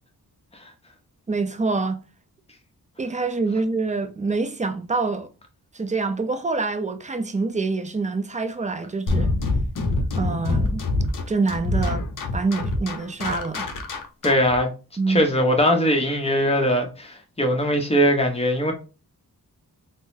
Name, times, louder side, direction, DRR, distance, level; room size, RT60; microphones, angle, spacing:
voice 1, 1.3-2.0 3.0-5.3 5.7-9.3 10.1-10.8 11.3-12.0 12.3-13.7 15.0-15.2, right 3 dB, 20° right, 0.4 m, -26 dB
sound 1, 9.1-14.6, left 2 dB, 55° left, 0.7 m, -25 dB
voice 2, 14.2-14.7 15.1-18.7, equal, 15° left, 0.8 m, -20 dB
3.8 x 2.0 x 2.6 m
wide cardioid pair, 85°, 39 cm